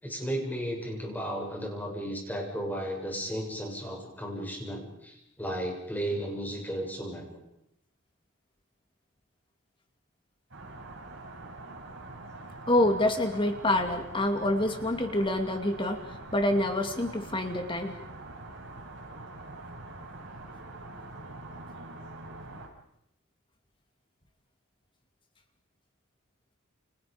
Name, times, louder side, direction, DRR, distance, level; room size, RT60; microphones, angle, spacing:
voice 1, 0.0-7.3, equal, 10° left, 0 dB, 7.2 m, -34 dB
sound 1, 10.5-22.7, right 2 dB, 60° right, 7.7 m, -44 dB
voice 2, 12.7-16.0 16.3-18.0, left 1 dB, 25° left, 5 dB, 2.5 m, -27 dB
30.0 x 29.0 x 5.2 m, 0.77 s
head